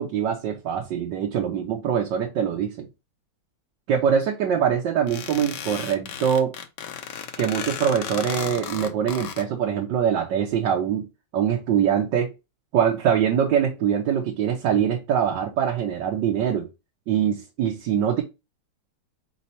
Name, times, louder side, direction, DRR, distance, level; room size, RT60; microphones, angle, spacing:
voice 1, 0.0-2.9 3.9-6.5 7.4-11.1 11.3-12.3 12.7-16.7 17.1-18.2, right 8 dB, 75° right, 1.5 m, -23 dB
sound 1, 5.1-9.4, left 8 dB, 70° left, 1.3 m, -34 dB
4.3 x 4.0 x 2.7 m
omnidirectional pair, 2.0 m